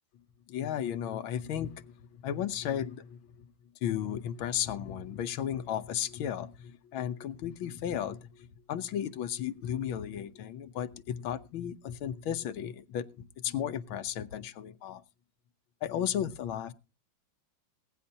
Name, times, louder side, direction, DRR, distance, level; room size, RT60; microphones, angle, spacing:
voice 1, 0.5-3.5 3.8-15.0 15.8-16.7, left 10 dB, 90° left, 1.7 m, -34 dB
21.5 x 9.4 x 2.8 m
omnidirectional pair, 2.2 m